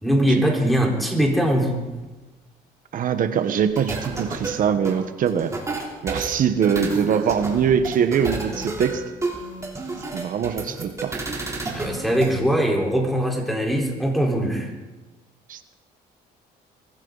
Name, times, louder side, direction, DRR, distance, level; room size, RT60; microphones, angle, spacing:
voice 1, 0.0-1.9 11.7-14.7, right 1 dB, ahead, -1 dB, 4.2 m, -21 dB
voice 2, 2.9-5.5 6.0-9.0 10.1-11.1 15.5-15.6, right 7 dB, 55° right, 10 dB, 1.2 m, -22 dB
sound 1, 3.8-12.3, right 2 dB, 15° right, 3.5 m, -31 dB
23.0 x 15.0 x 4.0 m, 1.2 s
cardioid pair, 110°, 17 cm